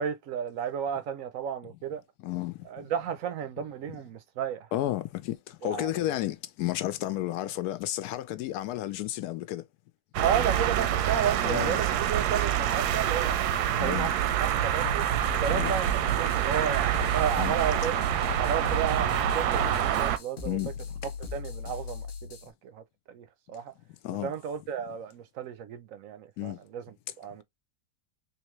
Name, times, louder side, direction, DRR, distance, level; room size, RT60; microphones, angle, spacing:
voice 1, 0.0-2.0 2.7-4.7 5.6-6.1 10.2-14.1 14.4-15.0 15.4-18.1 18.4-20.6 21.3-23.7 24.2-26.8 27.2-27.4, right 8 dB, 70° right, 0.9 m, -33 dB
voice 2, 2.2-2.8 4.7-9.6 11.5-11.8 13.8-14.1 15.5-15.8 17.4-17.6 20.4-20.9 24.0-24.3 26.4-26.6, left 14 dB, 80° left, 1.1 m, -32 dB
sound 1, 10.1-20.2, right 10 dB, 85° right, 1.1 m, -26 dB
sound 2, 14.8-22.5, left 6 dB, 50° left, 0.7 m, -39 dB
3.7 x 2.9 x 3.0 m
omnidirectional pair, 1.7 m